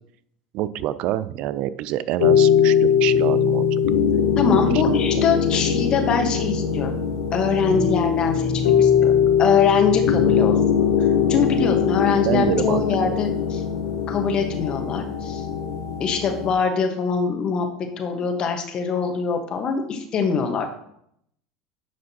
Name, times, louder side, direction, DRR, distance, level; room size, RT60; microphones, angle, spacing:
voice 1, 0.5-3.7 4.8-5.3 5.5-5.6 12.2-13.2, right 12 dB, 60° right, 15 dB, 0.4 m, -26 dB
sound 1, 2.2-16.5, left 7 dB, 85° left, 0.9 m, -21 dB
voice 2, 4.4-6.9 7.3-8.5 8.8-9.1 9.4-10.5 11.3-13.6 14.1-15.5 16.0-17.7 18.0-20.7, left 5 dB, 40° left, 5 dB, 1.2 m, -23 dB
9.7 x 5.1 x 2.9 m, 0.73 s
hypercardioid pair, 90°, 2 cm